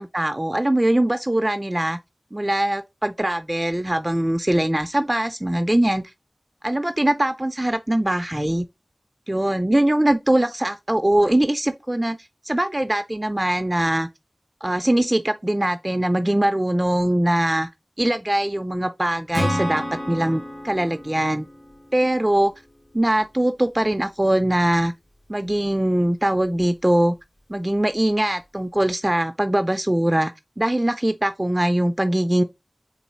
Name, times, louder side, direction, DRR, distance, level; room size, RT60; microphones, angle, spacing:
voice 1, 0.0-2.0 2.3-6.0 6.6-8.6 9.3-12.2 12.5-14.1 14.6-17.7 18.0-21.5 21.9-22.5 22.9-24.9 25.3-27.1 27.5-32.4, right 1 dB, 25° right, 0.4 m, -22 dB
Acoustic guitar / Strum, 19.3-22.9, left 1 dB, 65° left, 1.9 m, -30 dB
3.9 x 2.4 x 4.3 m
wide cardioid pair, 45°, 0 cm